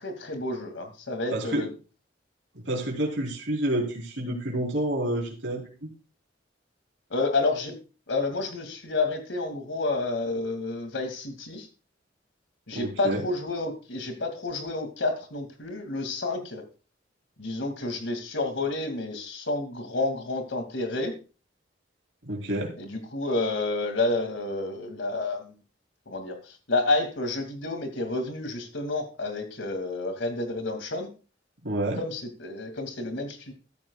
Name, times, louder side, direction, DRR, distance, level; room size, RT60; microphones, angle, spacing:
voice 1, 0.0-1.7 7.1-7.8 8.1-11.7 12.7-16.6 17.4-21.1 22.8-25.5 26.1-31.1 32.0-33.5, left 2 dB, 90° left, 6 dB, 2.4 m, -30 dB
voice 2, 1.3-1.6 2.5-5.9 12.7-13.2 22.2-22.7 31.6-32.0, right 1 dB, 85° right, 0 dB, 3.5 m, -29 dB
14.0 x 13.0 x 2.4 m, 0.33 s
head